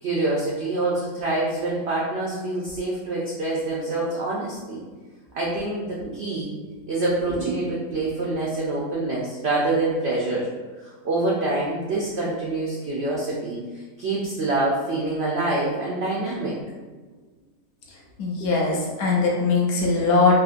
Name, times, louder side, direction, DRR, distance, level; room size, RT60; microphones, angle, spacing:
voice 1, 0.0-4.8 5.3-10.5 10.8-13.6 14.0-16.6 18.4-18.5, right 2 dB, 75° right, -5 dB, 0.6 m, -26 dB
voice 2, 18.2-20.4, left 3 dB, 70° left, -3 dB, 0.5 m, -20 dB
3.6 x 2.7 x 2.5 m, 1.3 s
omnidirectional pair, 1.8 m